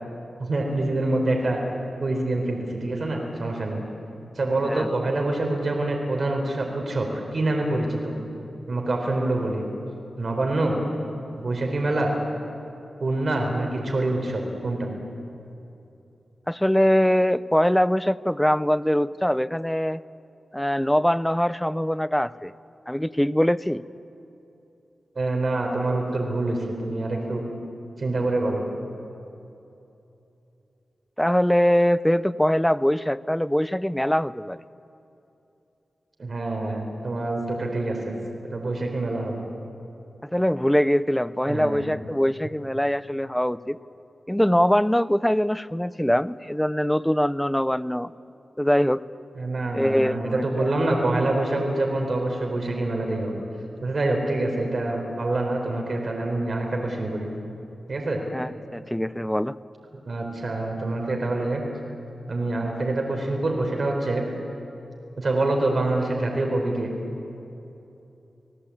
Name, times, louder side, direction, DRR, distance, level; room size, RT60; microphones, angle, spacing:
voice 1, 0.4-1.6 2.0-3.8 4.4-8.2 8.7-9.6 10.2-10.8 11.4-12.2 13.0-14.9 25.2-27.4 28.0-28.6 36.2-38.1 38.5-39.4 41.5-41.8 49.3-53.4 53.8-57.3 57.9-58.2 59.9-61.6 62.3-64.2 65.2-66.9, right 2 dB, 50° right, 1 dB, 4.2 m, -26 dB
voice 2, 16.5-20.0 20.5-22.5 22.9-23.8 31.2-34.6 40.3-43.8 44.3-48.1 48.6-49.0 49.7-50.7 58.3-59.6, equal, 5° left, 15 dB, 0.6 m, -22 dB
29.5 x 18.5 x 8.7 m, 2.9 s
wide cardioid pair, 100°, 0 cm